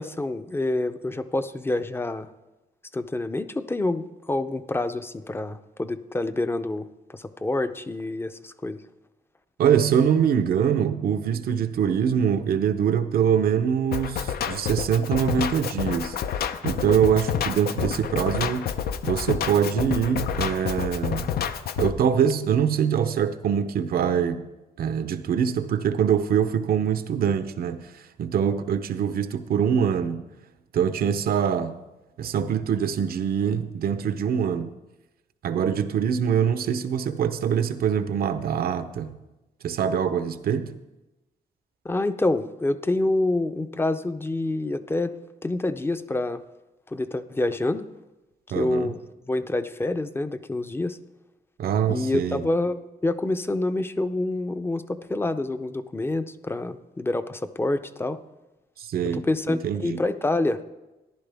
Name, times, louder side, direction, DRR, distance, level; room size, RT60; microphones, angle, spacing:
voice 1, 0.0-2.3 2.9-8.8 41.8-45.2 45.4-46.4 46.9-47.9 48.6-49.0 49.3-51.0 51.9-58.2 59.1-60.6, left 2 dB, 15° left, 0.5 m, -27 dB
voice 2, 9.6-16.1 16.6-18.7 19.0-21.3 21.8-24.5 24.8-27.9 28.2-30.3 30.7-31.7 32.2-34.7 35.4-39.2 39.6-40.7 48.5-48.9 51.6-52.5 58.8-60.0, right 8 dB, 80° right, 0.7 m, -24 dB
Drum kit, 13.9-21.9, left 8 dB, 85° left, 0.6 m, -29 dB
13.5 x 11.0 x 3.4 m
wide cardioid pair, 135°, 16 cm